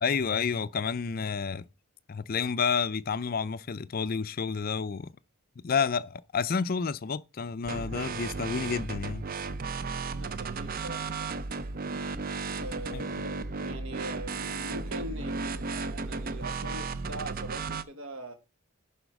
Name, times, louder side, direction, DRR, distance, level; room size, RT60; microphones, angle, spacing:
voice 1, 0.0-1.7 2.1-5.1 5.6-9.2 12.9-13.0, left 5 dB, 40° left, 0.4 m, -30 dB
sound 1, 7.6-17.8, right 4 dB, 40° right, 0.5 m, -34 dB
voice 2, 9.9-11.3 12.5-18.3, right 1 dB, 65° right, 1.8 m, -42 dB
11.0 x 4.3 x 5.2 m
head